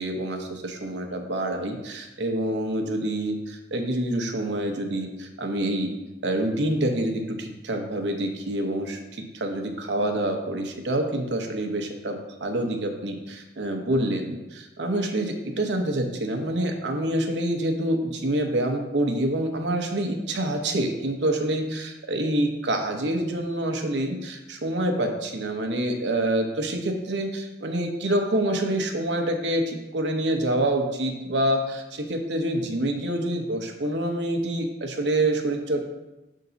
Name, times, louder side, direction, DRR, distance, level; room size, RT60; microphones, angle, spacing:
voice 1, 0.0-5.9 6.2-35.8, right 1 dB, 85° right, 3 dB, 0.9 m, -27 dB
6.8 x 3.7 x 3.9 m, 1.0 s
head